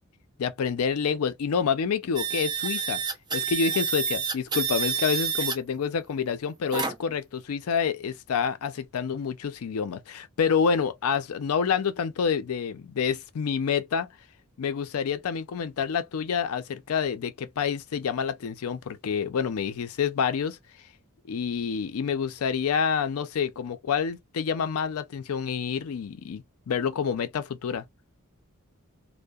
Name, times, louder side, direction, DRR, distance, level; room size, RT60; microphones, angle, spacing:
voice 1, 0.4-3.0 3.3-14.1 14.6-20.6 21.3-27.8, left 6 dB, 85° left, 0.4 m, -28 dB
sound 1, 2.2-5.6 6.7-7.1, right 6 dB, 20° right, 0.6 m, -28 dB
2.6 x 2.0 x 2.3 m
head